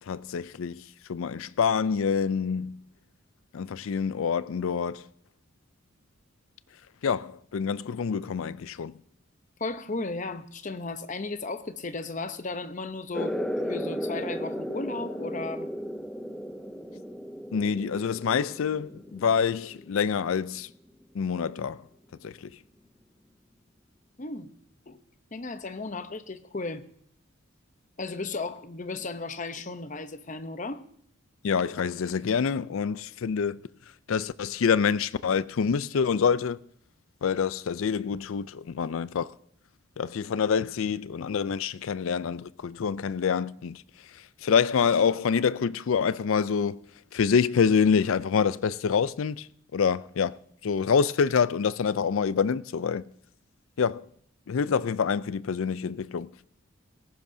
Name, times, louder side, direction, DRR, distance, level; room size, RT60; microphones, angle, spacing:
voice 1, 0.0-2.8 3.5-5.1 7.0-8.9 17.5-20.7 21.1-21.8 22.2-22.5 31.4-33.6 34.1-36.6 37.2-39.3 40.0-43.8 44.1-46.8 47.1-50.3 50.6-53.0 53.8-54.1 54.5-56.3, left 6 dB, 75° left, 0.4 m, -26 dB
voice 2, 9.6-13.4 13.7-15.7 24.2-24.5 24.9-25.0 25.3-26.9 28.0-30.8, left 3 dB, 35° left, 0.7 m, -35 dB
sound 1, 13.1-20.3, equal, ahead, 0.5 m, -35 dB
18.0 x 15.0 x 2.7 m
head